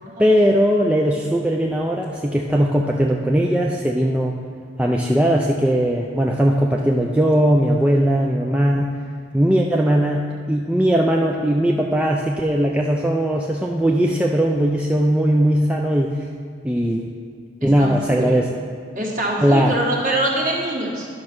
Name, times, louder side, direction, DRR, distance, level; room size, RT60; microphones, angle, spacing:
voice 1, 0.2-4.4 4.8-8.9 9.3-10.2 10.5-16.1 16.6-17.1 17.6-18.5 19.4-19.8, equal, 5° right, -1 dB, 0.4 m, -19 dB
voice 2, 17.6-18.4 18.9-21.1, right 1 dB, 40° right, -2 dB, 1.6 m, -24 dB
10.5 x 5.4 x 6.1 m, 2.1 s
head